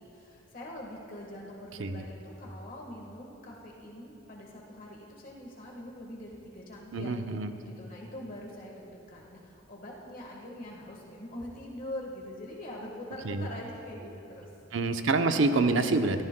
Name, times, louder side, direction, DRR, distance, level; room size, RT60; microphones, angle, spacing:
voice 1, 0.0-7.1 7.6-14.5, left 1 dB, 45° left, -2 dB, 1.4 m, -43 dB
voice 2, 6.9-7.5 13.2-13.5 14.7-16.2, right 3 dB, 70° right, 7 dB, 0.7 m, -26 dB
24.5 x 14.0 x 2.2 m, 2.9 s
head